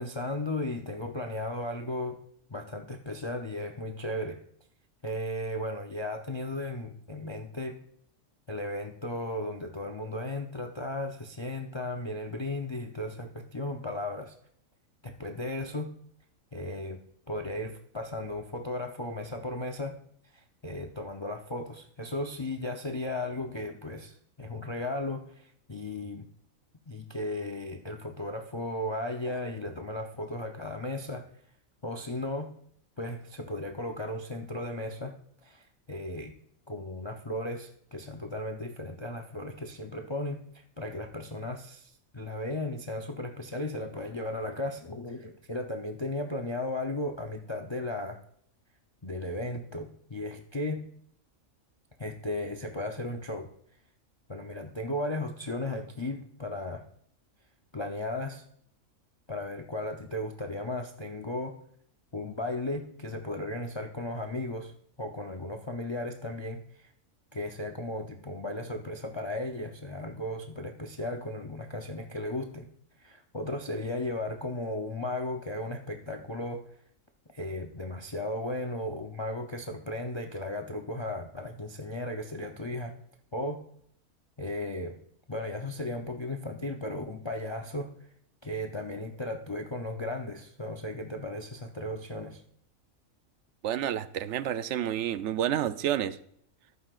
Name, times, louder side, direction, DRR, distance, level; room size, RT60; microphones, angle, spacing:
voice 1, 0.0-2.2 2.5-4.4 5.0-7.8 8.5-14.3 15.0-15.9 16.5-17.0 17.3-20.0 20.3-26.2 26.9-31.2 31.8-32.5 33.0-35.1 35.4-36.3 36.7-48.2 49.0-50.9 52.0-53.5 54.3-56.8 57.7-58.4 59.3-61.6 62.1-64.7 65.0-66.9 67.3-72.7 73.0-76.7 77.3-82.9 83.3-83.6 84.4-85.0 85.3-87.9 88.4-92.4, left 1 dB, 30° left, 4 dB, 0.5 m, -35 dB
voice 2, 93.6-96.2, right 10 dB, 65° right, 14 dB, 0.8 m, -29 dB
13.5 x 11.5 x 2.4 m, 0.66 s
omnidirectional pair, 1.4 m